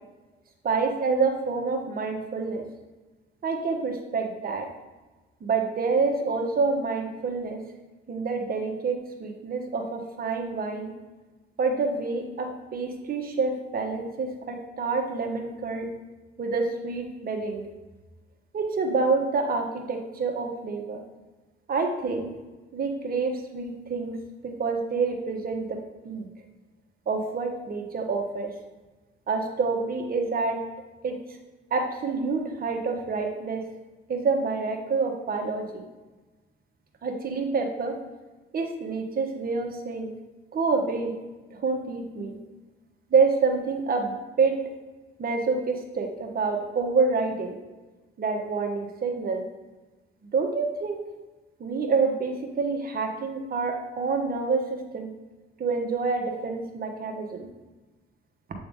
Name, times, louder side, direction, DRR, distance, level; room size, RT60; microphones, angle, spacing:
voice 1, 0.6-2.6 3.4-4.7 5.4-7.6 8.1-10.9 11.6-15.9 16.4-17.6 18.5-21.0 21.7-22.3 22.7-24.2 24.4-25.8 26.0-26.3 27.1-28.5 29.3-30.6 31.0-31.2 31.7-33.6 34.1-35.8 37.0-38.0 38.5-40.1 40.5-41.1 41.5-42.4 43.1-44.6 45.2-47.6 48.2-49.4 50.3-51.0 51.6-55.1 55.6-57.5, right 4 dB, 50° right, 3 dB, 1.2 m, -27 dB
8.0 x 3.8 x 3.6 m, 1.2 s
cardioid pair, 90°, 20 cm